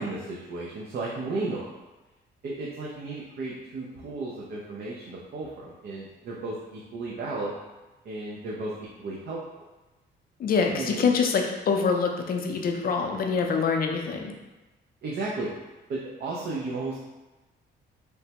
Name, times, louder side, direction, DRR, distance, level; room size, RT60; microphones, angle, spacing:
voice 1, 0.0-1.7 2.4-7.6 8.0-9.4 10.7-11.1 15.0-15.5 15.9-17.0, right 3 dB, 55° right, -4 dB, 0.5 m, -34 dB
voice 2, 10.4-14.3, left 5 dB, 50° left, 3 dB, 0.5 m, -25 dB
3.2 x 2.1 x 2.8 m, 1.1 s
cardioid pair, 90°, 20 cm